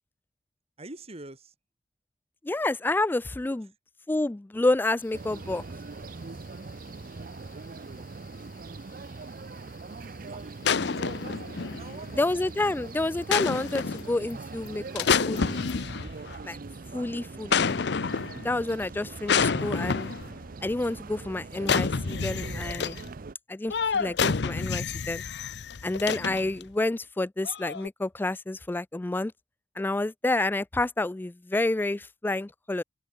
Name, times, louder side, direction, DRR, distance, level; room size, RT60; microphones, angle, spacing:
voice 1, 0.8-1.5 3.6-3.7 7.9-8.1 10.2-11.1 11.7-12.7, right 2 dB, 35° right, 2.5 m, -47 dB
voice 2, 2.4-3.7 4.1-5.6 12.2-15.6 16.4-16.6 16.9-17.7 18.4-20.1 20.6-23.0 23.5-25.2 25.8-29.3 29.8-32.8, left 2 dB, 10° left, 0.3 m, -29 dB
sound 1, 5.0-15.9, left 7 dB, 50° left, 5.5 m, -56 dB
sound 2, 5.1-23.3, right 3 dB, 50° right, 0.6 m, -41 dB
sound 3, 10.6-12.1 13.3-14.1 15.0-16.4 17.5-18.5 19.3-20.3 21.6-23.1 23.7-26.6 27.4-27.9, left 5 dB, 65° left, 0.7 m, -28 dB
open air
head